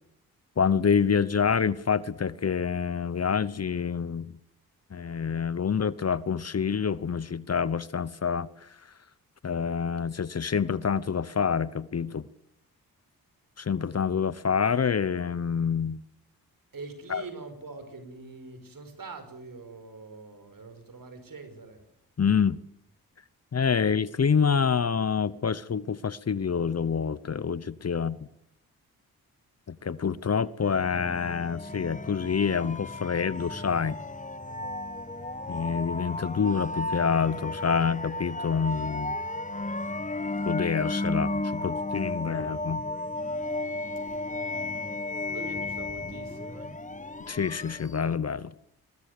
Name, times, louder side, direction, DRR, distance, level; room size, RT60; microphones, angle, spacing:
voice 1, 0.6-4.3 4.9-8.5 9.4-12.2 13.6-16.0 17.1-17.2 22.2-22.6 23.5-28.2 29.7-34.0 35.5-39.2 40.4-42.8 47.3-48.5, left 6 dB, 40° left, 0.9 m, -27 dB
voice 2, 16.7-21.8 27.9-28.2 44.3-46.8, right 3 dB, 55° right, 5.4 m, -44 dB
sound 1, 30.6-48.1, left 2 dB, 20° left, 1.3 m, -34 dB
22.0 x 19.5 x 6.8 m
supercardioid pair, 45°, 39 cm